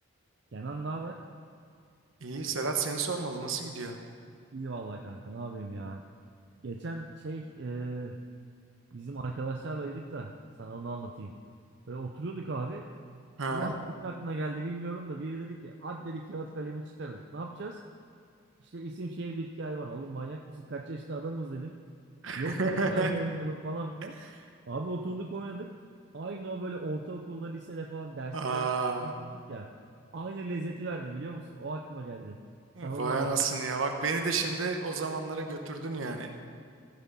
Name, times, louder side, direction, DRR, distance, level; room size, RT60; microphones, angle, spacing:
voice 1, 0.5-1.2 4.5-6.0 6.6-8.2 8.9-10.3 10.6-11.3 11.9-12.9 13.5-17.8 18.6-21.7 22.4-24.2 24.7-25.7 26.1-28.7 29.0-29.7 30.1-32.4 32.8-33.3, right 2 dB, 55° right, 2 dB, 0.5 m, -37 dB
voice 2, 2.2-4.0 13.4-13.7 22.2-23.1 28.3-29.2 32.7-36.5, right 4 dB, 75° right, 4 dB, 1.0 m, -31 dB
15.0 x 6.0 x 5.5 m, 2.2 s
head